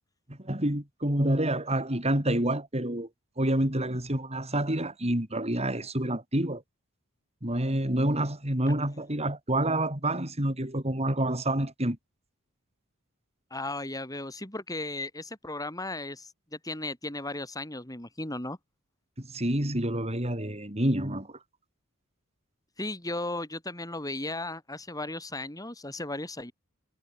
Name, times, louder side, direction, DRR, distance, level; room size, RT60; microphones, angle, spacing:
voice 1, 0.3-3.1 3.4-6.6 7.4-12.0 19.2-21.4, right 1 dB, 30° right, 5.1 m, -28 dB
voice 2, 13.5-18.6 22.8-26.5, left 2 dB, 15° left, 5.3 m, -36 dB
head